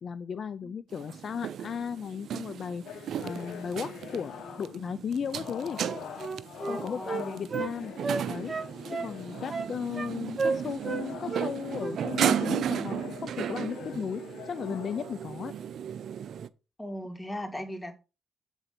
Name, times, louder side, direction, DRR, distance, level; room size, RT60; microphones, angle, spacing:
voice 1, 0.0-2.9 3.2-4.3 4.6-5.8 6.7-7.9 8.3-8.5 8.9-15.5, left 7 dB, 60° left, 0.6 m, -35 dB
sound 1, 0.9-16.5, right 9 dB, 70° right, 0.5 m, -35 dB
sound 2, 2.8-4.9 5.3-9.9 10.3-15.7, left 9 dB, 75° left, 1.1 m, -45 dB
Wind instrument woodwind instrument, 5.8-7.7 8.0-9.1 9.5-10.1 10.4-11.0 11.3-11.5 11.8-12.4 12.7-12.9, right 4 dB, 40° right, 0.9 m, -33 dB
voice 2, 6.6-7.4 16.8-18.0, equal, 15° left, 2.9 m, -38 dB
9.1 x 4.0 x 6.0 m
supercardioid pair, 65°, 0 cm